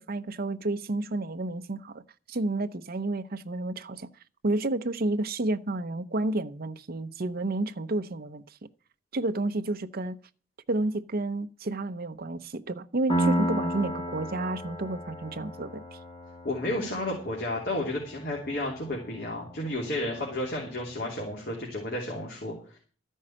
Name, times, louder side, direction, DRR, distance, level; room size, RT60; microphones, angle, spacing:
voice 1, 0.0-2.0 2.3-4.1 4.4-8.4 9.1-10.2 10.7-16.0, right 2 dB, 50° right, 0.8 m, -30 dB
Piano, 13.1-20.5, equal, 30° left, 2.8 m, -33 dB
voice 2, 16.4-22.8, left 1 dB, 55° left, 3.0 m, -32 dB
13.5 x 5.5 x 8.7 m
head